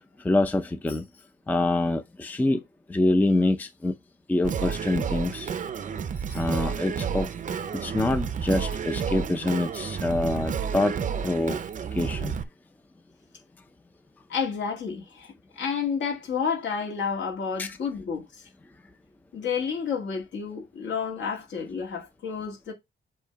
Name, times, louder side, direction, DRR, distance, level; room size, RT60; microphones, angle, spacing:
voice 1, 0.2-1.0 1.5-2.6 2.9-3.9 4.3-5.5 6.3-7.3 7.8-11.0 11.2-11.6 11.9-12.4 17.6-17.8, left 2 dB, 10° left, 0.5 m, -25 dB
Singing, 4.4-12.4, right 7 dB, 40° right, 0.6 m, -31 dB
voice 2, 14.3-18.4 19.3-22.7, left 6 dB, 65° left, 2.1 m, -30 dB
7.6 x 2.8 x 4.5 m
wide cardioid pair, 150°, 20 cm